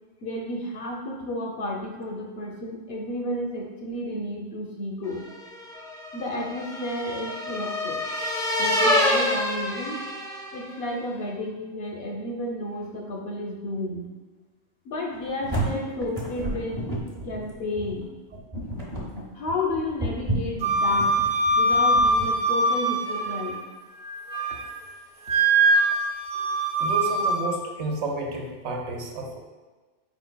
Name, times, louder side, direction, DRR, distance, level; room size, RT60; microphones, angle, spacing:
voice 1, 0.2-5.3 6.1-8.0 8.6-10.0 10.5-14.1 14.8-18.1 19.3-21.2 21.6-23.6, left 1 dB, 65° left, 1 dB, 0.7 m, -32 dB
sound 1, 5.3-10.8, left 1 dB, 5° left, 0.3 m, -27 dB
sound 2, 15.1-22.3, right 1 dB, 35° right, 0.8 m, -32 dB
Wind instrument woodwind instrument, 20.6-23.6 24.0-24.7 25.2-27.4, right 2 dB, 55° right, 1.2 m, -23 dB
voice 2, 26.8-29.4, right 2 dB, 70° right, 1 dB, 0.9 m, -31 dB
4.5 x 3.8 x 2.2 m, 1.3 s
omnidirectional pair, 1.2 m